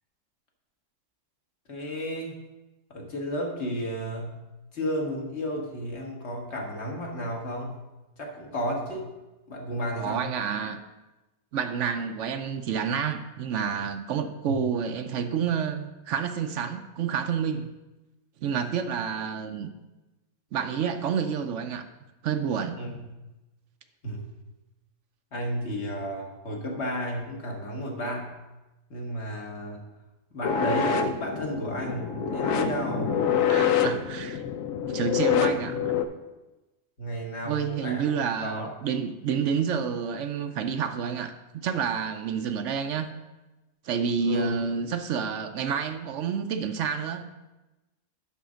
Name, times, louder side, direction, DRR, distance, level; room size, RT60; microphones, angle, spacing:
voice 1, 1.7-2.3 2.9-4.4 4.7-7.8 8.2-9.1 9.5-10.2 14.5-14.7 22.8-23.0 24.0-24.3 25.3-28.4 28.9-29.8 30.3-33.3 37.0-38.1 38.4-38.7 44.2-44.5, equal, 50° left, 0 dB, 1.8 m, -32 dB
voice 2, 10.0-10.8 11.5-17.7 18.4-19.7 20.5-21.8 22.2-22.8 33.5-34.4 34.9-35.9 37.4-41.3 41.6-43.1 43.8-47.2, right 7 dB, 65° right, 8 dB, 0.8 m, -29 dB
sound 1, 30.4-36.0, left 7 dB, 70° left, 1.0 m, -26 dB
11.0 x 3.7 x 6.3 m, 1.1 s
omnidirectional pair, 1.5 m